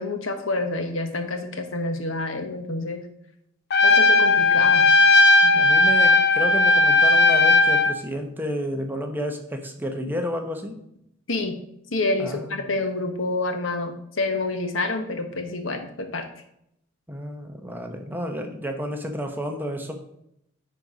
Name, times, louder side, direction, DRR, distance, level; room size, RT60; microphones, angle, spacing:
voice 1, 0.0-3.0 3.8-4.9 11.3-11.5 11.9-16.3, left 2 dB, 70° left, 6 dB, 1.2 m, -28 dB
Trumpet, 3.7-8.0, left 2 dB, 55° left, 0.7 m, -16 dB
voice 2, 5.4-10.8 12.2-12.7 17.1-19.9, equal, 10° right, 4 dB, 0.9 m, -31 dB
9.5 x 4.1 x 5.0 m, 0.76 s
head